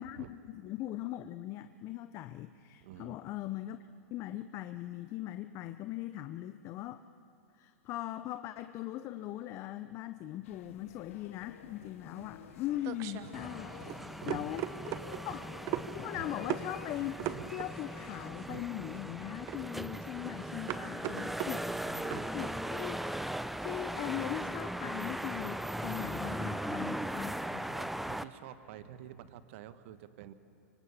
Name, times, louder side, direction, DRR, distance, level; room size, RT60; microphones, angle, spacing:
voice 1, 0.0-3.8 4.1-7.0 7.6-14.0 14.3-14.9 15.2-15.4 15.9-21.7 22.3-23.0 23.6-27.7, left 13 dB, 40° left, 11 dB, 0.6 m, -40 dB
voice 2, 2.8-3.2 11.8-11.9 13.8-14.5 18.9-19.0 21.5-22.3 26.2-26.9 27.3-30.3, right 11 dB, 60° right, 12 dB, 1.2 m, -50 dB
sound 1, 10.4-18.3, left 11 dB, 65° left, 1.0 m, -52 dB
sound 2, 12.2-22.6, right 12 dB, 40° right, 0.9 m, -40 dB
sound 3, 13.3-28.2, right 1 dB, ahead, 0.5 m, -39 dB
24.5 x 24.0 x 5.7 m, 2.9 s
hypercardioid pair, 115°, 8 cm